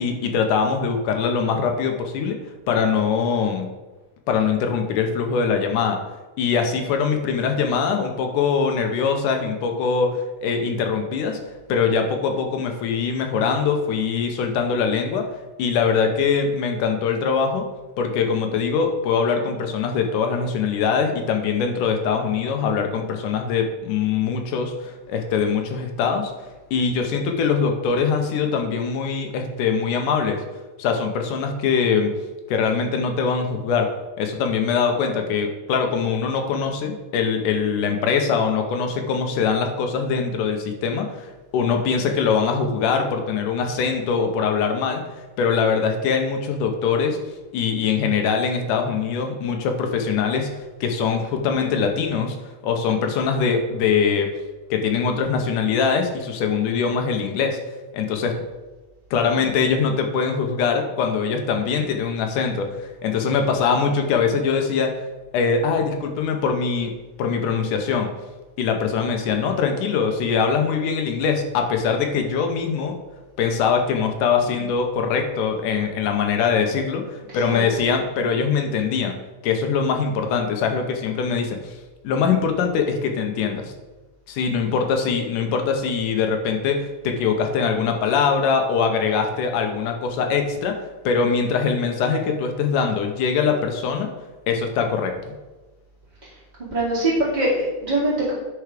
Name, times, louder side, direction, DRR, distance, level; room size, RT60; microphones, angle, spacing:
voice 1, 0.0-2.4 2.7-3.7 4.3-6.0 6.4-11.4 11.7-15.3 15.6-17.7 18.0-26.3 26.7-30.4 30.8-32.1 32.5-33.9 34.2-45.0 45.4-47.2 47.5-52.4 52.6-54.3 54.7-57.6 57.9-58.4 59.1-65.0 65.3-68.1 68.6-73.0 73.4-79.1 79.4-81.8 82.0-83.7 84.3-94.1 94.5-95.1, left 5 dB, 85° left, 4 dB, 2.5 m, -22 dB
voice 2, 96.6-98.3, right 1 dB, 15° right, -8 dB, 1.6 m, -23 dB
9.7 x 4.7 x 5.1 m, 1.2 s
omnidirectional pair, 3.6 m